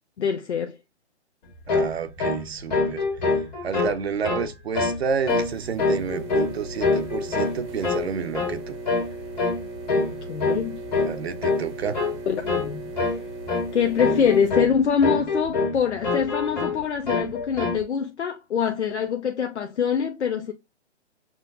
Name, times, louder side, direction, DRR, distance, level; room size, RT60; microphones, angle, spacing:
voice 1, 0.2-0.8 10.0-10.8 12.3-12.9 13.7-20.5, left 7 dB, 75° left, 0.6 m, -24 dB
sound 1, 1.7-1.9 2.2-2.4 2.7-3.9 4.2-4.5 4.7-5.0 5.3-5.5 5.8-6.5 6.8-7.6 7.8-8.1 8.3-8.6 8.9-9.1 9.4-9.6 9.9-10.1 10.4-10.6 10.9-11.1 11.4-11.7 11.9-12.1 12.5-12.7 13.0-13.2 13.5-13.7 14.0-14.7 15.0-15.8 16.0-16.8 17.1-17.8, left 3 dB, 40° left, 1.7 m, -24 dB
voice 2, 1.7-3.0 3.6-8.8 11.0-12.0, right 6 dB, 65° right, 0.7 m, -30 dB
sound 2, 5.3-14.5, right 2 dB, 25° right, 0.7 m, -38 dB
6.0 x 2.1 x 2.6 m
hypercardioid pair, 145°, 34 cm